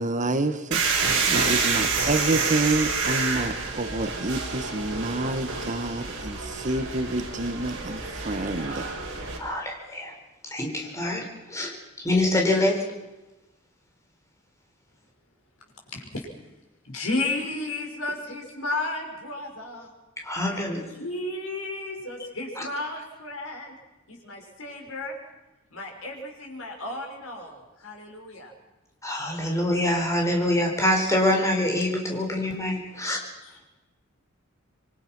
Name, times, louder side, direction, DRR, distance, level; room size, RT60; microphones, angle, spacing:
voice 1, 0.0-8.9, right 2 dB, 35° right, 9 dB, 1.3 m, -28 dB
sound 1, 0.7-9.4, right 4 dB, 60° right, 5.8 m, -28 dB
voice 2, 9.4-10.1 10.5-11.7 12.0-12.8 20.2-20.9 22.6-22.7 29.0-33.2, left 1 dB, 15° left, 1 dB, 4.6 m, -25 dB
voice 3, 15.9-16.3 16.8-19.9 20.4-23.7 24.1-25.1 25.7-28.5 29.4-29.5 32.8-32.9 33.4-33.5, left 2 dB, 70° left, 2 dB, 6.1 m, -33 dB
26.0 x 23.5 x 6.1 m, 1.1 s
head